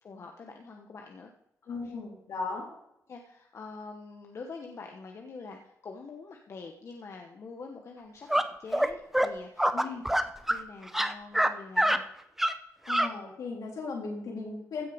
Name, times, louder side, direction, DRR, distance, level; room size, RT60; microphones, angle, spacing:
voice 1, 0.0-1.3 1.8-1.9 2.5-2.6 3.1-10.0 10.5-12.0, left 4 dB, 50° left, 3 dB, 1.1 m, -45 dB
voice 2, 1.7-2.7 9.7-10.0 12.9-14.9, left 4 dB, 75° left, -2 dB, 3.7 m, -36 dB
sound 1, 8.3-8.4 8.7-8.9 9.1-9.3 9.6-10.6 10.9-11.5 11.8-12.0 12.4-12.5 12.9-13.1, right 1 dB, 5° right, 0.7 m, -25 dB
15.5 x 6.5 x 5.1 m, 0.83 s
cardioid pair, 80°, 6 cm